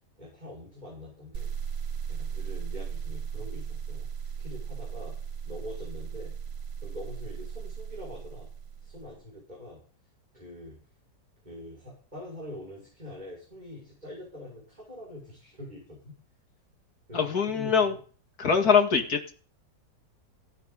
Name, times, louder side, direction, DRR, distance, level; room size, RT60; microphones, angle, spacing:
voice 1, 0.2-1.5 2.1-4.1 4.4-5.1 5.4-6.3 6.8-8.5 8.8-9.8 10.3-10.8 11.4-16.1 17.1-18.0, left 1 dB, 25° right, -5 dB, 6.4 m, -44 dB
sound 1, 1.3-9.2, right 7 dB, 60° right, 0.6 m, -36 dB
voice 2, 17.1-17.9 18.4-19.3, left 6 dB, 55° left, 4 dB, 2.4 m, -23 dB
16.5 x 10.0 x 4.1 m, 0.41 s
omnidirectional pair, 1.9 m